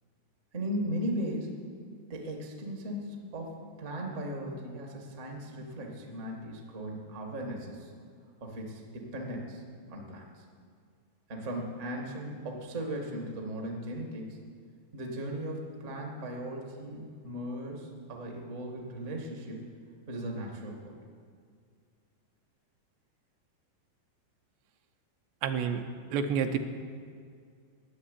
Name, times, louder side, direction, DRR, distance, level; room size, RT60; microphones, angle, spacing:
voice 1, 0.5-1.6 2.1-7.9 8.4-9.6 9.9-10.4 11.3-14.4 14.9-19.7 20.1-21.0, equal, 65° right, 0 dB, 0.7 m, -37 dB
voice 2, 25.4-25.8 26.1-26.6, right 7 dB, 80° right, 7 dB, 2.9 m, -28 dB
13.0 x 7.4 x 10.0 m, 2.1 s
omnidirectional pair, 5.0 m